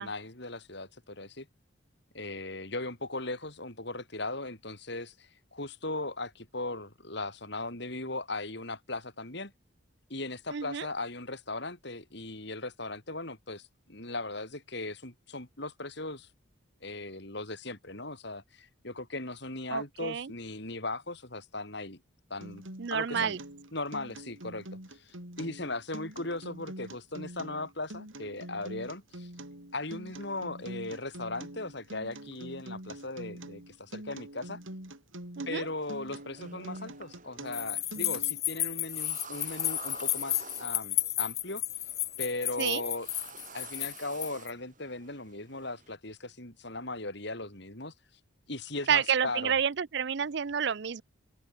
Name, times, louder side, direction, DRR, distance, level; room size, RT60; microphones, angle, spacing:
voice 1, 0.0-1.5 2.1-9.5 10.1-16.3 16.8-22.0 22.3-22.6 22.9-23.4 23.7-24.7 24.9-29.3 29.7-34.6 35.5-41.6 42.2-43.1 43.5-47.9 48.5-49.6, left 2 dB, 55° left, 5.4 m, -38 dB
voice 2, 10.5-10.9 19.7-20.3 22.8-23.4 35.4-35.7 42.6-42.8 48.9-51.0, right 7 dB, 55° right, 0.5 m, -29 dB
Acoustic guitar, 22.4-38.4, right 1 dB, 75° right, 7.7 m, -45 dB
sound 1, 35.8-46.0, right 5 dB, 40° right, 4.6 m, -51 dB
sound 2, 37.5-44.5, left 12 dB, 30° left, 1.1 m, -33 dB
open air
head